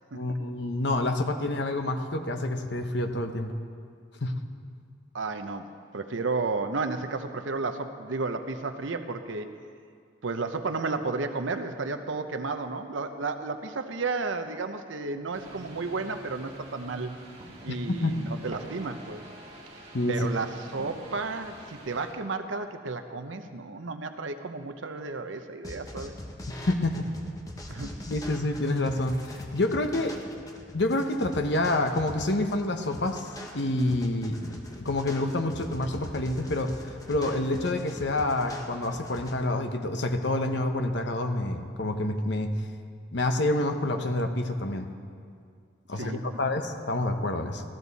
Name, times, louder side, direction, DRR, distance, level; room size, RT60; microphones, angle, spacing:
voice 1, 0.1-3.6 4.2-4.3 17.7-18.2 19.9-20.2 26.7-27.1 28.1-30.2 30.7-33.3 33.5-36.8 37.1-42.5 43.1-44.9 45.9-47.6, left 2 dB, 60° left, 6 dB, 0.9 m, -28 dB
voice 2, 5.1-9.5 10.2-17.1 17.6-19.2 20.1-26.1 27.7-28.0 45.9-46.4, right 3 dB, 75° right, 8 dB, 0.8 m, -32 dB
sound 1, 15.3-22.1, right 1 dB, 30° right, 1.8 m, -46 dB
sound 2, 25.6-39.3, left 1 dB, 20° left, 0.9 m, -42 dB
15.0 x 14.0 x 4.1 m, 2.3 s
head